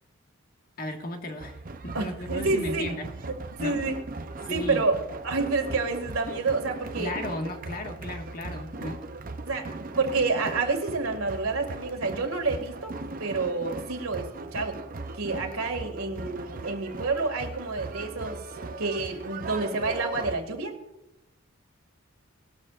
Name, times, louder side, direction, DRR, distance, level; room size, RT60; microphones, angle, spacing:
voice 1, 0.8-3.1 3.6-3.8 4.4-4.8 7.0-9.0, left 1 dB, 45° left, 3 dB, 1.6 m, -35 dB
sound 1, 1.4-20.4, right 2 dB, 40° right, 0.6 m, -38 dB
voice 2, 1.9-2.9 3.6-3.9 4.2-7.1 9.4-14.8 15.1-18.4 18.8-20.8, right 3 dB, 90° right, 4 dB, 2.1 m, -29 dB
19.5 x 12.5 x 2.5 m, 0.90 s
head